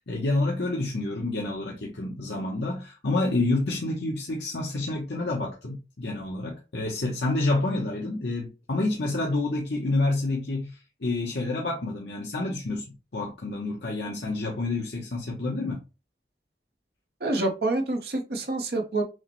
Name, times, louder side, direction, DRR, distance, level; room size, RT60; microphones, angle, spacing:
voice 1, 0.0-12.9 13.1-15.8, left 2 dB, 70° left, 0.8 m, -28 dB
voice 2, 17.2-19.0, right 2 dB, 60° right, 0.8 m, -27 dB
6.2 x 2.1 x 3.0 m
head